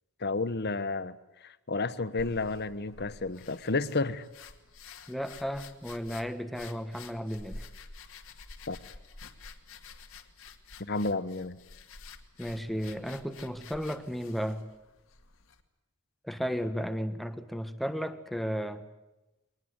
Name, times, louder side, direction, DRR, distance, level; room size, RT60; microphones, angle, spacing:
voice 1, 0.2-4.2 8.7-8.8 10.8-11.6, left 3 dB, 50° left, 15 dB, 1.2 m, -31 dB
sound 1, 2.2-15.6, left 4 dB, 65° left, 2.2 m, -50 dB
voice 2, 5.1-7.6 12.4-14.6 16.2-18.8, equal, ahead, 9 dB, 1.5 m, -34 dB
23.0 x 20.0 x 9.7 m, 0.99 s
head